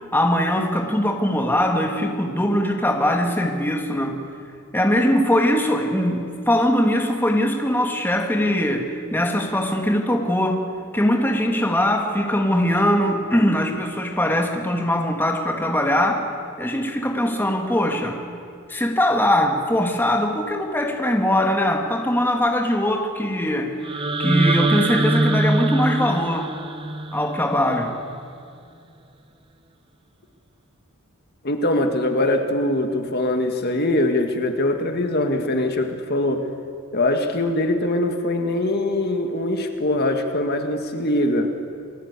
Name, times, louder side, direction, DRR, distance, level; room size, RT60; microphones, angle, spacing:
voice 1, 0.1-4.2 4.7-10.6 10.9-16.3 16.6-18.2 18.7-26.5 27.1-27.9, left 1 dB, 10° left, 2 dB, 2.3 m, -21 dB
sound 1, 23.8-27.9, right 2 dB, 25° right, 1.2 m, -23 dB
voice 2, 31.4-36.4 36.9-41.5, left 1 dB, 45° left, 5 dB, 1.9 m, -22 dB
29.5 x 20.5 x 8.4 m, 2.5 s
head